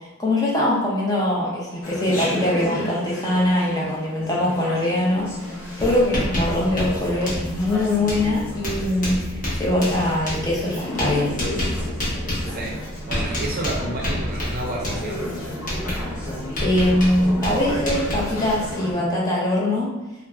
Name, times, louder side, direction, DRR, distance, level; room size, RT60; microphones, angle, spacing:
voice 1, 0.2-5.3 5.8-11.3 16.6-19.9, left 1 dB, 15° left, -5 dB, 0.5 m, -22 dB
Chatter, 1.8-18.9, left 1 dB, 65° left, 0.8 m, -33 dB
Writing, 5.2-5.4 5.6-18.7, left 1 dB, 35° left, 0.9 m, -29 dB
voice 2, 13.0-15.2, right 1 dB, 40° right, -2 dB, 0.5 m, -30 dB
3.1 x 2.4 x 2.3 m, 1.0 s
head